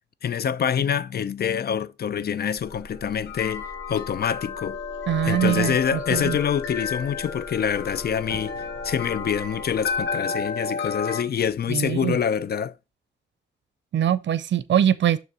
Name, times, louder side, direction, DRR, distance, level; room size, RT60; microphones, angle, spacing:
voice 1, 0.2-4.8 5.2-8.5 8.8-12.7, left 8 dB, 60° left, 0.4 m, -26 dB
sound 1, 2.6-11.2, left 5 dB, 90° left, 1.2 m, -32 dB
sound 2, 2.6-10.1, right 1 dB, 10° left, 1.3 m, -45 dB
voice 2, 5.1-6.4 11.7-12.2 13.9-15.2, right 10 dB, 75° right, 0.5 m, -23 dB
6.5 x 3.2 x 5.9 m
cardioid pair, 60°, 19 cm